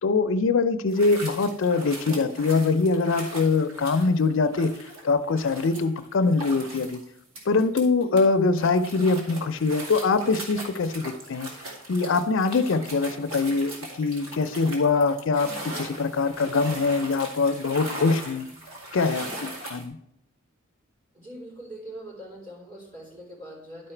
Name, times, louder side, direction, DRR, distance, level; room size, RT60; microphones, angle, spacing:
voice 1, 0.0-4.7 5.0-7.0 7.5-11.5 11.9-18.5 18.9-20.0, left 4 dB, 65° left, 11 dB, 0.5 m, -23 dB
sound 1, 0.9-8.2 8.6-19.9, right 1 dB, 80° right, 2.3 m, -39 dB
voice 2, 21.1-23.9, right 1 dB, 40° right, -3 dB, 3.8 m, -42 dB
11.5 x 4.8 x 4.4 m, 0.79 s
head